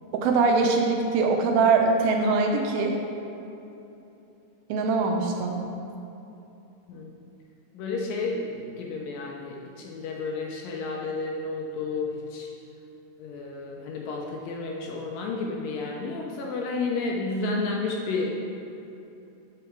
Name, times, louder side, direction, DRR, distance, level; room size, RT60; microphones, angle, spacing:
voice 1, 0.1-3.0 4.7-5.6, right 4 dB, 75° right, 2 dB, 2.4 m, -22 dB
voice 2, 7.7-12.5 13.2-18.3, left 3 dB, 75° left, -1 dB, 2.2 m, -31 dB
8.0 x 6.2 x 5.9 m, 2.9 s
omnidirectional pair, 4.5 m